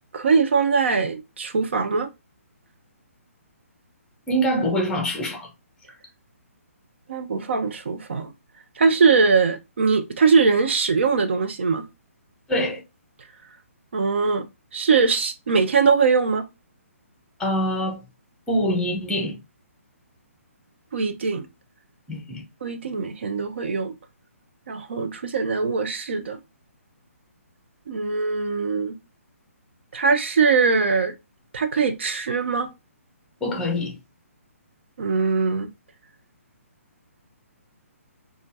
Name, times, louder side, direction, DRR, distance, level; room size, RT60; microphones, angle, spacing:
voice 1, 0.1-2.1 7.1-8.3 8.8-11.8 13.9-14.5 14.7-16.4 20.9-21.5 22.6-23.9 24.7-26.4 27.9-29.0 29.9-31.1 31.5-32.7 35.0-35.7, right 5 dB, 50° right, 0.5 m, -21 dB
voice 2, 4.3-5.5 12.5-12.8 17.4-18.0 18.5-19.4 22.1-22.4 33.4-34.0, equal, 10° left, 0.8 m, -24 dB
5.0 x 2.4 x 2.6 m
figure-of-eight pair, 135°, 8 cm